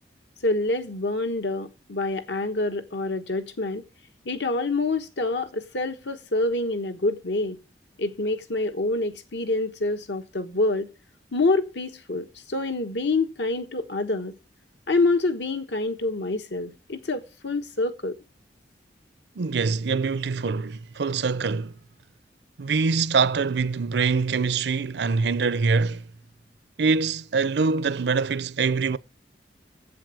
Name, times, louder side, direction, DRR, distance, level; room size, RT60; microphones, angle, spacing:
voice 1, 0.4-3.8 4.2-7.6 8.0-10.9 11.3-14.3 14.9-18.2, left 2 dB, 80° left, 1.3 m, -26 dB
voice 2, 19.4-21.7 22.6-26.1 26.8-29.0, right 4 dB, 75° right, 0.5 m, -24 dB
8.0 x 7.6 x 7.7 m
head